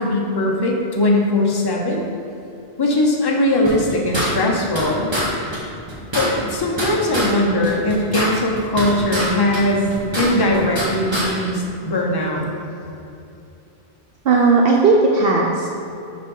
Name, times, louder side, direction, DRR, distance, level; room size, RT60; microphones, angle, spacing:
voice 1, 0.0-2.0 2.8-5.1 6.1-12.5, left 1 dB, 25° left, -1 dB, 0.7 m, -20 dB
sound 1, 3.6-4.9 5.1-5.3 5.5-5.6 5.9-7.3 7.6-9.3 9.5-10.9 11.1-11.3, right 1 dB, 25° right, 1.2 m, -24 dB
voice 2, 14.2-15.7, right 3 dB, 65° right, 0 dB, 0.7 m, -15 dB
6.0 x 4.1 x 5.4 m, 2.8 s
omnidirectional pair, 1.1 m